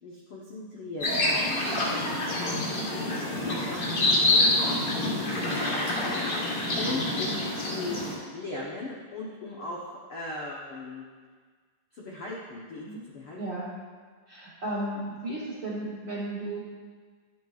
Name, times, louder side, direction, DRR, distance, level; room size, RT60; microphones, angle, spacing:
voice 1, 0.0-2.2 2.5-6.4 6.8-8.0 8.3-11.1 11.9-13.4, left 2 dB, 85° left, -4 dB, 1.2 m, -39 dB
sound 1, 1.0-8.1, left 2 dB, 45° left, 3.2 m, -27 dB
voice 2, 13.4-13.7 14.3-16.6, right 1 dB, 60° right, -7 dB, 1.2 m, -35 dB
12.5 x 8.9 x 2.4 m, 1.5 s
omnidirectional pair, 4.0 m